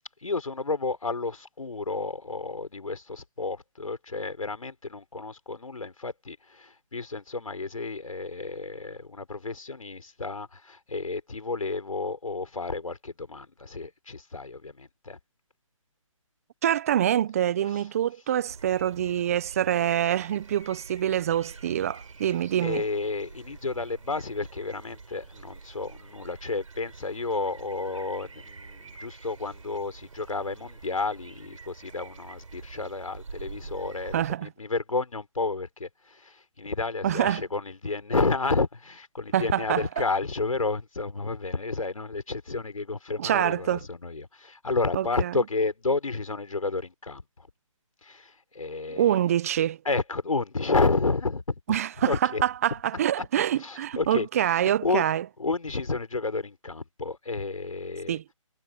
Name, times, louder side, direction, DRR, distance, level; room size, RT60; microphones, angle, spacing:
voice 1, 0.2-15.2 22.6-47.2 48.0-49.2 49.8-51.4 52.0-52.4 53.6-55.0 55.4-58.2, left 3 dB, 80° left, 4.9 m, -31 dB
voice 2, 16.6-22.8 34.1-34.5 37.0-37.4 39.3-39.9 43.2-43.8 44.9-45.4 49.0-49.8 51.7-55.3 58.1-58.2, right 11 dB, 25° right, 0.7 m, -25 dB
sound 1, 18.5-34.4, right 4 dB, 70° right, 4.5 m, -46 dB
figure-of-eight pair, 155°, 17 cm